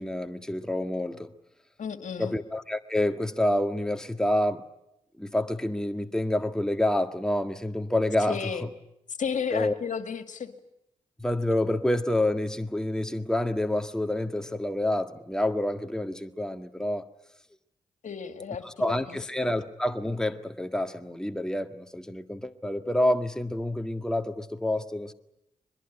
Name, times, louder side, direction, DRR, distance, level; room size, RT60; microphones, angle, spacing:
voice 1, 0.0-1.3 2.2-4.6 5.2-8.7 9.5-9.7 11.2-17.0 18.6-25.1, left 1 dB, 5° left, 7 dB, 1.7 m, -28 dB
voice 2, 1.8-2.3 8.2-8.7 9.2-10.5 18.0-18.6 19.1-19.5, left 6 dB, 70° left, 9 dB, 2.1 m, -33 dB
23.0 x 21.0 x 9.9 m, 0.82 s
cardioid pair, 50°, 13 cm